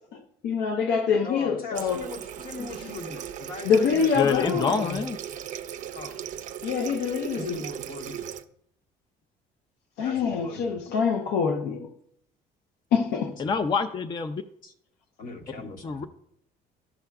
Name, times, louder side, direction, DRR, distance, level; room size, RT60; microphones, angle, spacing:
voice 1, 0.4-2.1 3.7-5.1 6.6-7.6 10.0-11.9 12.9-13.4, left 6 dB, 85° left, 0.7 m, -25 dB
voice 2, 1.2-4.6 5.9-6.3 7.3-8.3 10.0-10.8 13.4-13.6 14.6-14.7 15.2-16.1, left 3 dB, 60° left, 1.2 m, -39 dB
Water tap faucet, 1.7-8.4, right 10 dB, 50° right, 0.4 m, -37 dB
voice 3, 4.2-5.2 13.4-14.4 15.8-16.0, left 5 dB, 25° left, 0.4 m, -26 dB
13.5 x 5.7 x 2.3 m
cardioid pair, 110°, 17 cm